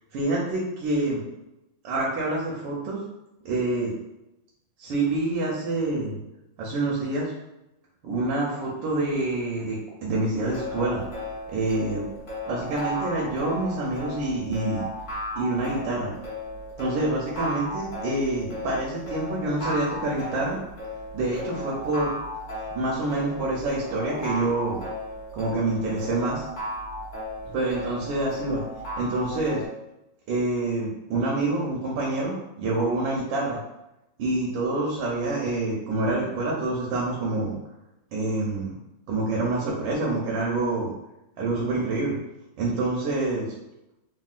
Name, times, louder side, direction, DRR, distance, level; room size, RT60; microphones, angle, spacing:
voice 1, 0.1-1.2 1.8-3.0 3.4-3.9 4.8-6.2 6.6-7.3 8.0-11.0 11.5-12.0 12.5-14.8 15.4-16.1 16.8-20.6 21.1-22.1 22.7-24.8 25.3-26.4 27.5-28.6 29.0-29.6 30.3-33.6 34.2-37.5 38.1-38.7 39.1-40.9 41.4-42.2 42.6-43.5, right 2 dB, 85° right, -4 dB, 1.4 m, -27 dB
sound 1, 10.4-29.7, left 1 dB, 45° left, 1.2 m, -35 dB
3.5 x 2.3 x 2.4 m, 0.91 s
omnidirectional pair, 2.2 m